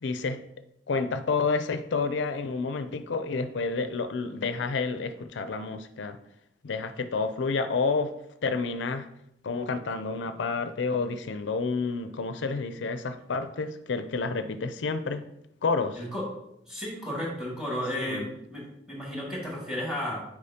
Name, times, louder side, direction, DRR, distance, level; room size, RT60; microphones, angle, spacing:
voice 1, 0.0-0.4 0.9-6.2 6.6-8.1 8.4-9.1 9.4-15.2 15.6-16.0 18.0-18.3, left 4 dB, 80° left, 10 dB, 0.4 m, -29 dB
voice 2, 15.9-16.3 16.7-20.3, equal, 5° right, -3 dB, 2.0 m, -33 dB
8.3 x 4.9 x 2.8 m, 0.78 s
head